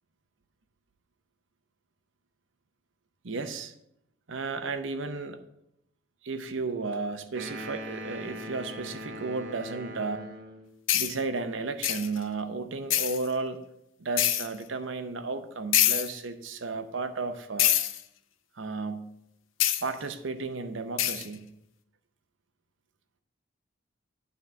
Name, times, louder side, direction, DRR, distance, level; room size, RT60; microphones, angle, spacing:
voice 1, 3.2-3.7 4.3-5.4 6.2-10.3 10.9-13.6 14.0-17.7 18.6-19.1 19.8-21.5, right 3 dB, 75° right, 9 dB, 0.8 m, -33 dB
sound 1, 7.3-10.7, equal, 60° right, 1.0 m, -40 dB
sound 2, 10.9-11.1 11.8-12.2 12.9-13.3 14.2-14.5 15.7-16.1 17.6-18.0 19.6-19.8 21.0-21.3, left 12 dB, 90° left, 0.6 m, -25 dB
9.6 x 4.0 x 5.7 m, 0.80 s
head